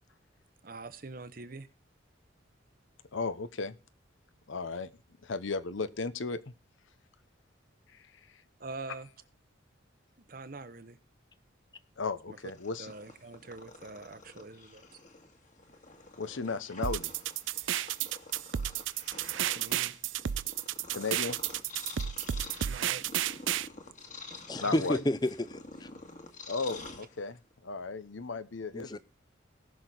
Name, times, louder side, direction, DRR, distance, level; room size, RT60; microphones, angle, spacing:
voice 1, 0.6-1.7 8.6-9.1 10.2-11.0 12.3-12.4 12.8-14.8 19.3-20.0 22.6-23.1 23.8-24.0 24.2-24.7, right 3 dB, 45° right, 0.9 m, -45 dB
voice 2, 3.1-3.8 4.5-4.9 5.2-6.5 7.9-8.4 12.0-12.9 16.2-17.1 20.9-21.4 24.6-25.0 26.5-29.0, left 4 dB, 80° left, 0.8 m, -35 dB
Purr, 12.4-27.5, left 3 dB, 40° left, 1.8 m, -49 dB
sound 1, 16.8-23.7, right 11 dB, 75° right, 0.5 m, -32 dB
voice 3, 24.5-25.9 28.7-29.0, left 1 dB, 20° left, 0.6 m, -31 dB
19.0 x 6.3 x 3.9 m
head